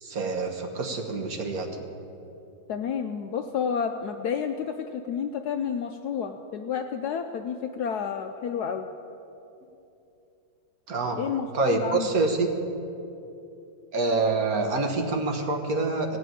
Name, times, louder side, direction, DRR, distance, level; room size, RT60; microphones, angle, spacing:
voice 1, 0.0-1.8 10.9-11.2 11.5-12.5 13.9-16.2, right 3 dB, 55° right, 3 dB, 1.6 m, -26 dB
voice 2, 2.7-8.9 11.2-12.1, left 7 dB, 70° left, 6 dB, 1.0 m, -30 dB
17.0 x 5.7 x 9.2 m, 2.8 s
omnidirectional pair, 2.1 m